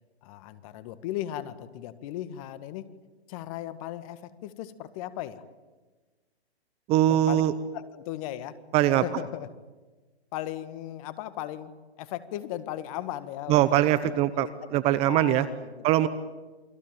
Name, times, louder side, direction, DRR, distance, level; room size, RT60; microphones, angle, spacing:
voice 1, 0.2-2.9 3.3-5.4 7.1-7.4 7.7-8.6 9.0-9.5 10.3-13.7 14.2-15.8, left 13 dB, 35° left, 13 dB, 1.8 m, -37 dB
voice 2, 6.9-7.5 8.7-9.0 13.5-14.5 14.7-15.5 15.8-16.1, right 13 dB, 20° right, 15 dB, 0.8 m, -22 dB
29.0 x 21.5 x 9.2 m, 1.3 s
hypercardioid pair, 135°, 32 cm